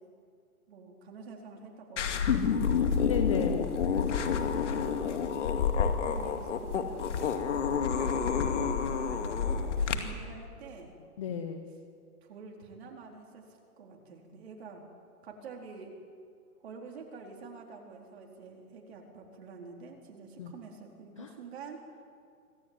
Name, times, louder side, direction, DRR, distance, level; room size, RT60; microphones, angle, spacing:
voice 1, 0.7-3.1 4.1-5.0 5.8-7.2 7.5-11.0 12.2-13.4 13.8-14.8 15.2-16.0 16.6-21.8, right 4 dB, 45° right, 1 dB, 4.3 m, -47 dB
sound 1, 2.0-10.0, left 6 dB, 50° left, 2.4 m, -29 dB
voice 2, 3.0-3.9 11.2-11.7 20.4-20.5 21.2-21.3, left 7 dB, 20° left, 7 dB, 0.8 m, -34 dB
25.5 x 15.5 x 9.4 m, 2.3 s
hypercardioid pair, 160°, 45 cm